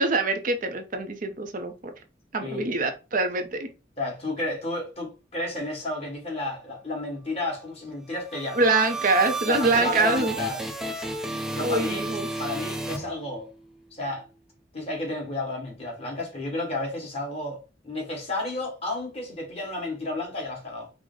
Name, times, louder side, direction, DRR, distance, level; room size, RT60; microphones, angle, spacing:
voice 1, 0.0-1.9 2.3-3.7 8.5-10.3 11.6-12.3, right 3 dB, 50° right, 0.6 m, -24 dB
voice 2, 4.0-8.6 9.4-10.6 11.5-12.0 12.4-13.5 13.9-14.3 14.7-20.9, left 2 dB, 35° left, 1.6 m, -32 dB
sound 1, 8.1-13.7, right 1 dB, ahead, 0.6 m, -33 dB
4.8 x 2.1 x 3.8 m
head